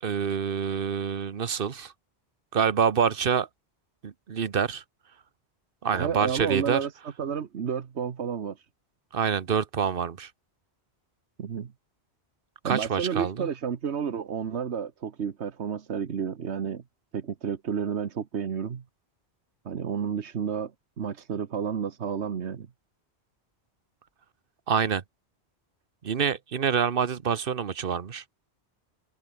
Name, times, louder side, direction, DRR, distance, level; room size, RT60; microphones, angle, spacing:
voice 1, 0.0-1.9 2.5-3.5 4.0-4.8 5.8-6.9 9.1-10.3 12.6-13.5 24.7-25.0 26.0-28.2, right 7 dB, 55° right, 1.2 m, -26 dB
voice 2, 5.9-6.9 7.2-8.7 11.4-11.7 12.6-16.8 17.1-18.8 19.6-20.7 21.0-22.7, right 7 dB, 85° right, 1.5 m, -31 dB
open air
omnidirectional pair, 1.1 m